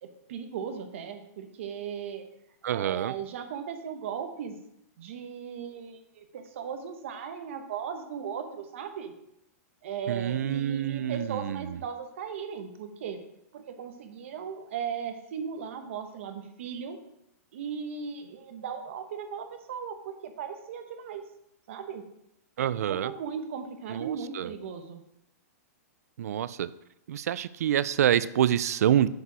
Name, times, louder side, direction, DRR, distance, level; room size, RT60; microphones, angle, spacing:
voice 1, 0.0-2.3 2.7-4.6 5.0-9.1 9.8-13.2 13.5-17.0 17.5-21.2 21.7-22.0 22.9-25.0, right 7 dB, 50° right, 7 dB, 0.9 m, -37 dB
voice 2, 2.6-3.1 10.1-11.8 22.6-23.1 23.9-24.5 26.2-26.7 27.1-29.1, right 10 dB, 65° right, 17 dB, 0.4 m, -27 dB
6.6 x 4.8 x 4.6 m, 0.81 s
hypercardioid pair, 170°, 9 cm